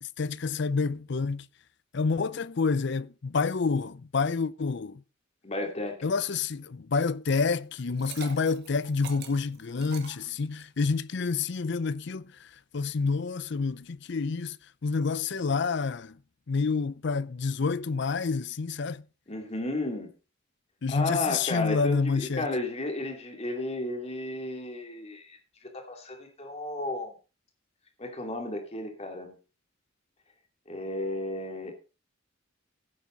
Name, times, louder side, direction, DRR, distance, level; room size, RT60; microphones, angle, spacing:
voice 1, 0.0-1.5 1.9-5.0 6.0-16.2 16.5-19.0 20.8-22.5, left 4 dB, 60° left, 0.5 m, -28 dB
voice 2, 5.4-6.0 19.3-20.1 20.9-25.4 25.7-27.1 28.0-29.3 30.7-31.7, left 2 dB, 30° left, 2.7 m, -33 dB
Liquid, 7.8-10.9, right 6 dB, 55° right, 1.9 m, -44 dB
15.5 x 8.4 x 3.9 m
head